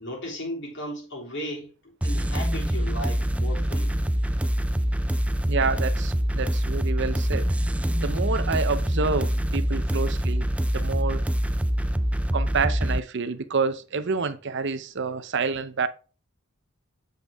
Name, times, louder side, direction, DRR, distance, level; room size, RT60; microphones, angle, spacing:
voice 1, 0.0-1.7 2.0-3.9, equal, 55° left, 3.2 m, -35 dB
sound 1, 2.0-13.0, equal, 5° right, 0.3 m, -25 dB
voice 2, 5.5-7.5 8.0-11.2 12.3-15.9, right 4 dB, 55° right, 0.6 m, -28 dB
7.9 x 5.3 x 3.5 m
head